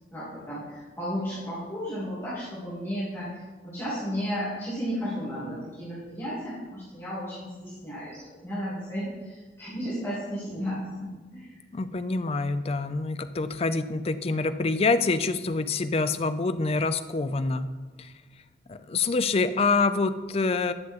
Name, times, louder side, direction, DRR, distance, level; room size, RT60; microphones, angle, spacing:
voice 1, 0.1-3.3 3.6-11.6, equal, 15° left, -11 dB, 2.8 m, -34 dB
voice 2, 11.7-17.7 18.0-18.1 18.7-20.7, left 3 dB, 35° left, 12 dB, 0.4 m, -26 dB
11.0 x 7.1 x 3.6 m, 1.3 s
head